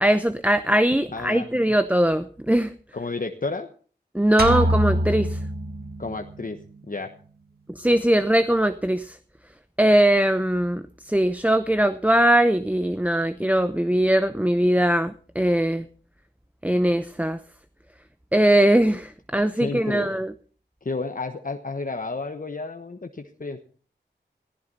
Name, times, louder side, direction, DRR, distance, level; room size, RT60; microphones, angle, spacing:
voice 1, 0.0-2.7 4.1-5.4 7.8-9.2 9.8-15.8 16.6-17.4 18.3-20.3, right 1 dB, 10° right, 11 dB, 0.8 m, -21 dB
voice 2, 1.1-1.5 2.9-3.7 6.0-6.6 6.9-7.1 19.5-20.1 20.8-23.6, left 3 dB, 50° left, 5 dB, 1.2 m, -31 dB
sound 1, 4.4-6.2, right 1 dB, 55° right, 1.9 m, -24 dB
15.5 x 14.5 x 4.1 m, 0.42 s
cardioid pair, 40°, 19 cm